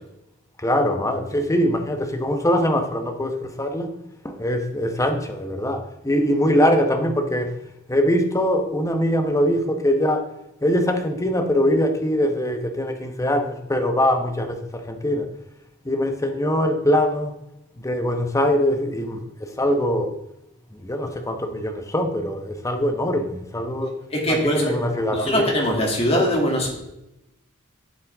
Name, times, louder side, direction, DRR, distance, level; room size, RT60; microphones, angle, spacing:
voice 1, 0.6-3.9 4.2-7.5 7.9-10.3 10.6-15.3 15.8-17.3 17.8-19.2 19.6-20.1 20.8-23.9 24.3-25.4, equal, 15° left, 1.0 m, -22 dB
voice 2, 23.8-26.7, equal, 30° left, 2.5 m, -22 dB
11.5 x 7.6 x 3.6 m
head